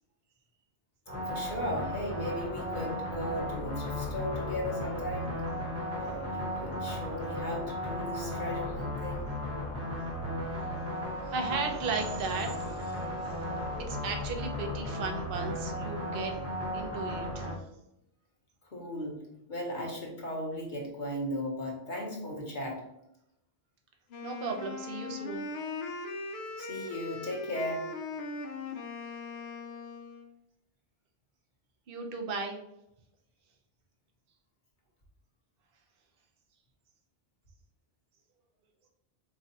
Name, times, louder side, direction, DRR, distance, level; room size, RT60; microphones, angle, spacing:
sound 1, 1.1-17.5, equal, 15° right, 0.9 m, -35 dB
voice 1, 1.3-5.4 5.9-9.3 18.6-19.2 19.5-22.8 26.6-27.9, left 1 dB, 50° left, -1 dB, 0.9 m, -36 dB
voice 2, 11.2-13.5 13.9-16.3 16.7-17.6 24.2-25.5 31.9-32.6, right 4 dB, 60° right, 3 dB, 0.8 m, -36 dB
Wind instrument woodwind instrument, 24.1-30.3, left 3 dB, 75° left, 0.8 m, -40 dB
4.5 x 2.2 x 2.7 m, 0.81 s
omnidirectional pair, 1.1 m